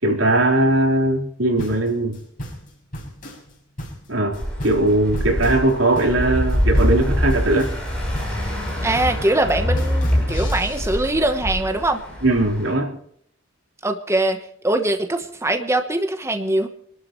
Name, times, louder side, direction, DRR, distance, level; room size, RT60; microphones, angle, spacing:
voice 1, 0.0-2.2 4.1-7.7 12.2-12.9, right 2 dB, 80° right, 1 dB, 3.9 m, -19 dB
sound 1, 1.6-11.1, equal, 45° left, 6.1 m, -36 dB
sound 2, 4.3-12.7, equal, 5° left, 6.5 m, -24 dB
voice 2, 8.8-12.0 13.8-14.4 14.6-16.7, right 1 dB, 15° right, 5 dB, 1.0 m, -22 dB
26.5 x 12.5 x 3.2 m, 0.65 s
head